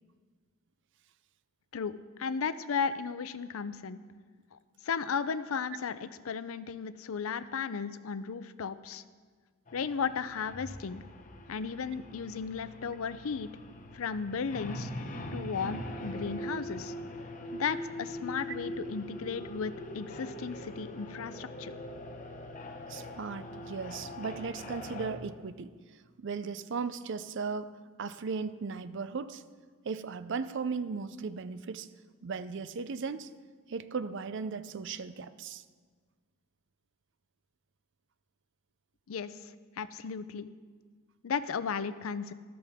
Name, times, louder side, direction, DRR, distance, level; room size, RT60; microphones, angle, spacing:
voice 1, 1.7-4.0 4.5-9.0 9.7-11.0 11.5-13.5 13.9-14.9 15.3-16.9 17.5-21.7 39.1-39.3 39.8-40.5 41.2-42.3, left 6 dB, 70° left, 14 dB, 0.5 m, -35 dB
sound 1, 9.7-25.1, left 1 dB, 35° left, 0.9 m, -42 dB
voice 2, 22.9-25.7 26.2-29.4 29.8-31.9 32.2-33.3 33.7-35.6, right 5 dB, 55° right, 13 dB, 0.5 m, -37 dB
13.5 x 12.5 x 3.5 m, 1.5 s
head